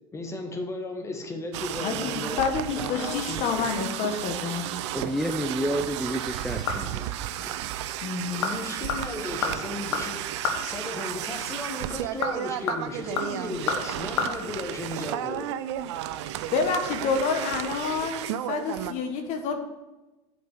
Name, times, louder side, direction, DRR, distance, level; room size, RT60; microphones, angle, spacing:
voice 1, 0.1-2.4 2.8-3.7 8.3-10.2 10.6-15.5, left 2 dB, 20° left, 4 dB, 1.5 m, -35 dB
sound 1, 1.5-18.9, right 12 dB, 75° right, 0.5 m, -33 dB
voice 2, 1.8-4.7 8.0-8.6 16.5-18.2 18.5-19.6, left 5 dB, 55° left, 6 dB, 1.3 m, -28 dB
voice 3, 4.9-7.1 7.4-7.5, equal, ahead, 4 dB, 0.6 m, -30 dB
sound 2, 6.2-7.1 7.4-7.5 8.1-8.6 8.9-10.7 11.9-14.3 14.6-14.7, left 6 dB, 85° left, 1.4 m, -30 dB
7.9 x 5.0 x 6.1 m, 1.1 s
hypercardioid pair, 100°, 15 cm